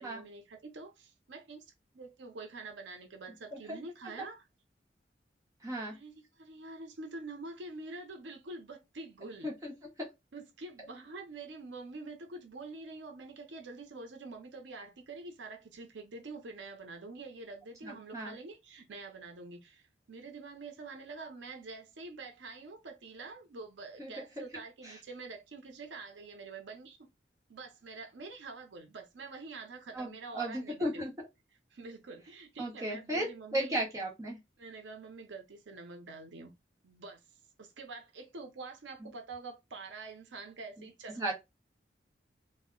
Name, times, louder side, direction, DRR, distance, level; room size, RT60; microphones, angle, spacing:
voice 1, 0.0-1.6 1.9-4.4 5.9-9.5 10.3-27.0 27.5-31.0 31.7-33.8 34.6-36.5 36.8-37.2 37.6-41.3, right 3 dB, 90° right, 0.6 m, -46 dB
voice 2, 5.6-6.0 9.4-9.7 17.8-18.3 24.0-24.5 24.8-25.0 29.9-31.1 32.6-34.4 41.2-41.3, right 1 dB, 20° right, 0.9 m, -35 dB
2.1 x 2.1 x 3.6 m
head